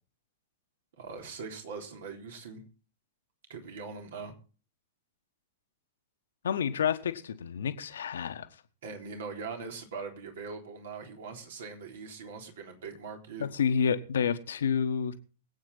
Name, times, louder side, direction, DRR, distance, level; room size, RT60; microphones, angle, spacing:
voice 1, 1.0-2.6 3.5-4.3 8.8-13.5, right 5 dB, 60° right, 3 dB, 3.8 m, -41 dB
voice 2, 6.4-8.5 13.4-15.1, left 7 dB, 65° left, 10 dB, 1.4 m, -29 dB
23.0 x 8.8 x 4.1 m, 0.38 s
figure-of-eight pair, 100°, 0 cm